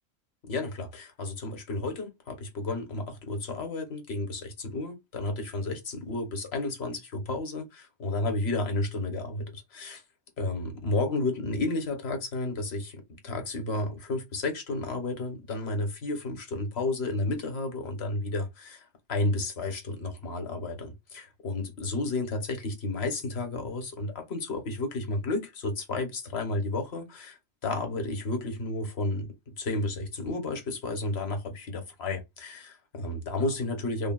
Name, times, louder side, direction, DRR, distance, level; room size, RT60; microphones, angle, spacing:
voice 1, 0.4-10.0 10.4-34.1, left 2 dB, 60° left, 1.2 m, -32 dB
3.3 x 2.2 x 2.2 m
omnidirectional pair, 1.3 m